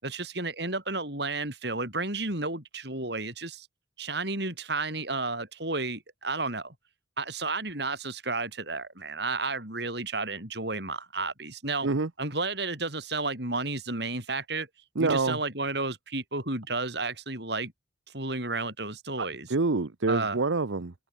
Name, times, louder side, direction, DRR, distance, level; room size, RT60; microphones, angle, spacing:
voice 1, 0.0-3.7 4.0-6.7 7.2-11.9 12.2-14.7 15.0-17.7 18.1-19.5 20.1-20.4, right 3 dB, 60° right, 7.4 m, -32 dB
voice 2, 15.0-15.4 19.2-20.9, right 3 dB, 85° right, 0.9 m, -27 dB
head